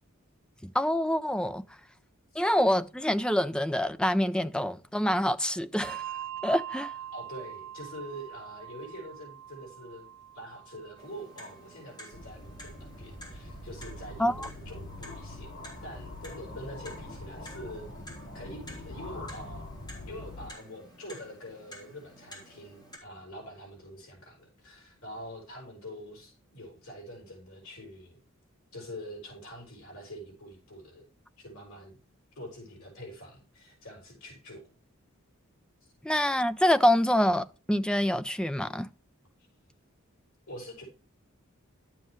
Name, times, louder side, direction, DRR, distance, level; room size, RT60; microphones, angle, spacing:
voice 1, 0.6-1.6 2.4-6.0 6.4-6.9 14.2-14.5 36.0-38.9, left 1 dB, 5° left, 0.4 m, -26 dB
Bell, 5.8-12.7, right 10 dB, 75° right, 0.5 m, -43 dB
voice 2, 7.1-10.1 10.3-15.5 15.8-17.9 18.3-19.7 20.0-28.2 28.7-31.0 31.4-32.0 32.3-34.6 40.5-40.8, equal, 85° left, 5.1 m, -45 dB
Clock, 11.0-23.0, equal, 20° left, 3.2 m, -51 dB
sound 1, 12.1-20.5, left 1 dB, 60° left, 2.6 m, -44 dB
12.0 x 7.3 x 3.2 m
head